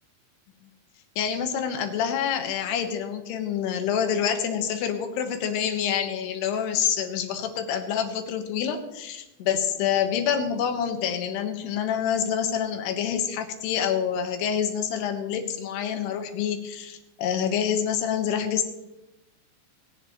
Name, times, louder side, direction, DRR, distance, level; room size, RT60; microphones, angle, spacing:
voice 1, 1.2-18.7, left 8 dB, 85° left, 6 dB, 3.3 m, -27 dB
19.5 x 10.5 x 3.0 m, 0.95 s
omnidirectional pair, 4.6 m